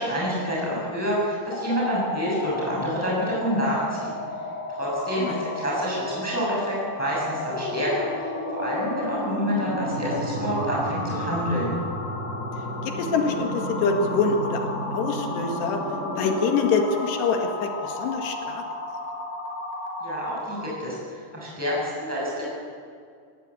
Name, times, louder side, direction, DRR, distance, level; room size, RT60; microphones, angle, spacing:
voice 1, 0.0-4.1 4.8-8.3 8.5-11.7 20.0-22.4, equal, 5° left, -5 dB, 6.7 m, -28 dB
sound 1, 1.4-20.8, left 1 dB, 50° left, 5.4 m, -32 dB
voice 2, 12.8-15.8 16.2-18.6, left 4 dB, 70° left, 4 dB, 3.8 m, -25 dB
18.0 x 17.5 x 8.4 m, 2.2 s
omnidirectional pair, 5.2 m